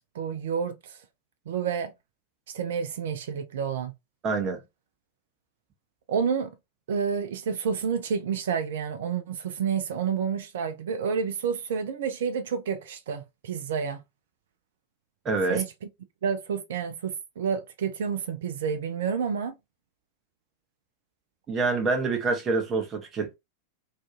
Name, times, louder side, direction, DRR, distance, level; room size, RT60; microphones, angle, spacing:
voice 1, 0.1-1.0 1.5-1.9 2.5-3.9 6.1-6.5 6.9-14.0 15.5-15.7 16.2-19.5, right 6 dB, 60° right, 0.4 m, -29 dB
voice 2, 4.2-4.6 15.2-15.6 21.5-23.4, right 3 dB, 25° right, 0.7 m, -26 dB
2.5 x 2.3 x 2.3 m
figure-of-eight pair, 90°, 0 cm